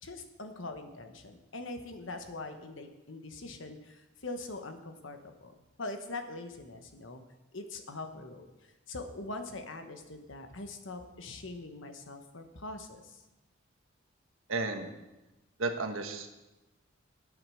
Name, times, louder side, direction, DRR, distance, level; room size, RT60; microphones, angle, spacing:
voice 1, 0.0-5.5 5.8-7.2 7.5-8.5 8.9-13.2, left 2 dB, 70° left, 6 dB, 1.3 m, -42 dB
voice 2, 14.5-14.9 15.6-16.3, right 3 dB, 85° right, 5 dB, 1.4 m, -33 dB
10.5 x 8.9 x 6.4 m, 1.0 s
head